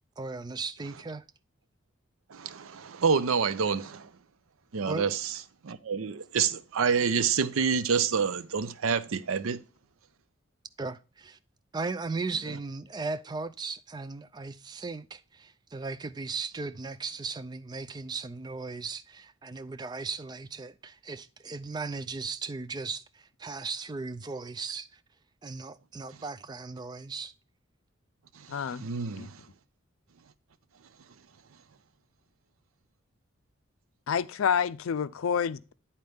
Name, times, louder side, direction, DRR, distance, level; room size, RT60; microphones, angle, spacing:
voice 1, 0.2-1.2 4.9-5.2 10.8-11.4 11.7-25.0 25.4-27.3, right 4 dB, 20° right, 0.3 m, -37 dB
voice 2, 2.3-4.1 4.7-5.4 5.6-9.6 28.4-29.4, right 6 dB, 80° right, 0.5 m, -28 dB
voice 3, 28.5-28.8 29.2-29.3 34.1-35.7, left 7 dB, 80° left, 0.4 m, -28 dB
9.3 x 4.2 x 3.4 m
head